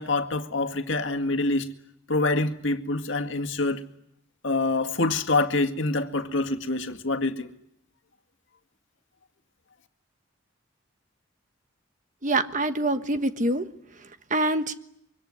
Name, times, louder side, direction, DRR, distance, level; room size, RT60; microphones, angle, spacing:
voice 1, 0.0-1.7 2.1-3.8 4.4-7.5, left 2 dB, 70° left, 2.0 m, -26 dB
voice 2, 12.2-13.6 14.3-14.7, right 2 dB, 40° right, 1.3 m, -25 dB
25.5 x 24.0 x 9.7 m
head